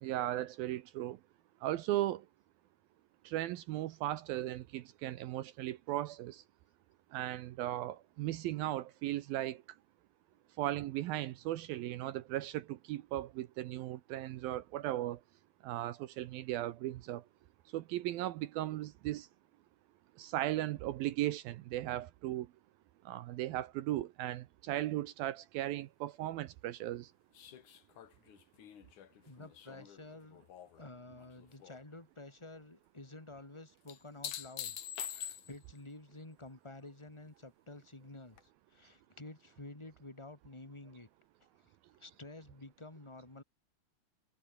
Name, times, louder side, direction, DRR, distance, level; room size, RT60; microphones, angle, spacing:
voice 1, 0.0-1.2 1.6-2.3 3.2-6.4 7.1-9.6 10.6-15.2 15.6-17.2 17.7-19.3 20.2-22.5 23.1-27.1, right 14 dB, 75° right, 2.2 m, -37 dB
sound 1, 27.4-30.8 31.2-31.8 33.9-35.8 38.4-38.5, left 10 dB, 55° left, 2.7 m, -45 dB
voice 2, 29.3-30.4 30.8-34.8 35.1-38.4 38.7-41.1 41.6-43.4, left 2 dB, 10° left, 1.6 m, -51 dB
omnidirectional pair, 5.2 m